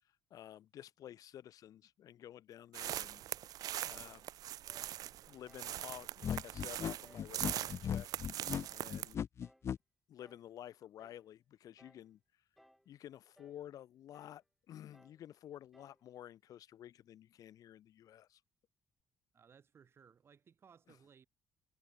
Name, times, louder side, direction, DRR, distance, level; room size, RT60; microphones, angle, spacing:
voice 1, 0.3-3.2 3.8-4.3 5.3-8.1 8.7-9.3 10.1-12.2 12.9-18.4, left 11 dB, 60° left, 4.6 m, -52 dB
sound 1, 2.7-9.1, right 13 dB, 65° right, 0.6 m, -42 dB
sound 2, 3.9-4.2 4.7-5.0 5.5-5.8 6.2-6.5 7.0-7.4 7.8-8.1 8.6-8.9 9.4-9.7 10.2-10.5 11.0-11.3 11.8-12.1 12.6-12.9 13.4-13.6 14.1-14.4 14.9-15.2 15.7-16.0, equal, ahead, 5.3 m, -65 dB
sound 3, 6.2-9.8, left 8 dB, 40° left, 0.6 m, -38 dB
voice 2, 19.3-21.3, right 7 dB, 35° right, 6.9 m, -63 dB
cardioid pair, 145°, 7 cm